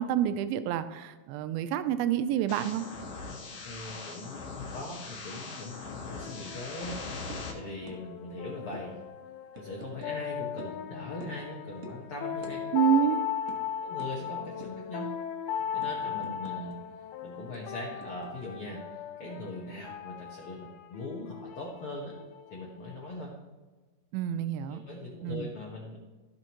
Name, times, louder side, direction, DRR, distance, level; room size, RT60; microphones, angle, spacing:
voice 1, 0.0-2.8 12.7-13.2 24.1-24.8 25.2-25.5, right 10 dB, 85° right, 11 dB, 2.4 m, -28 dB
sound 1, 2.5-7.5, left 4 dB, 50° left, 1.9 m, -41 dB
voice 2, 3.6-9.0 9.5-13.1 13.8-15.1 15.7-16.8 17.2-22.1 22.5-23.3 24.7-26.0, left 2 dB, 70° left, -2 dB, 1.3 m, -41 dB
sound 2, 5.7-23.1, left 8 dB, 90° left, 2.6 m, -38 dB
sound 3, 7.3-7.5 7.9-8.0 8.3-8.4 8.7-8.9 9.5-10.1 10.6-10.8 11.2-11.5 11.8-12.0 12.4-12.6 12.8-13.0 13.5-13.6 14.0-14.1 14.6-14.9 15.3-16.8 17.0-17.1 17.5-18.5, right 4 dB, 65° right, 1.6 m, -46 dB
14.0 x 6.5 x 3.0 m, 1.3 s
omnidirectional pair, 4.3 m